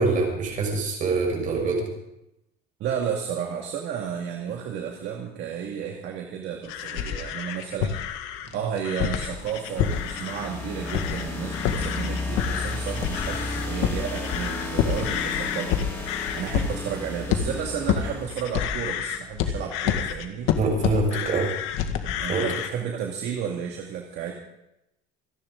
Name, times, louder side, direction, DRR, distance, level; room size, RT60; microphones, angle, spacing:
voice 1, 0.0-1.9 8.4-8.5 20.6-21.5 22.3-22.5, right 3 dB, 40° right, 1 dB, 6.4 m, -24 dB
voice 2, 2.8-8.0 8.5-20.5 22.0-24.3, right 8 dB, 55° right, 1 dB, 2.2 m, -32 dB
sound 1, 6.6-10.5 10.8-11.3 11.5-22.7, left 9 dB, 75° left, 1.9 m, -28 dB
sound 2, 8.9-18.8, left 2 dB, 15° left, 5.0 m, -34 dB
28.0 x 10.5 x 3.9 m, 0.85 s
cardioid pair, 140°, 21 cm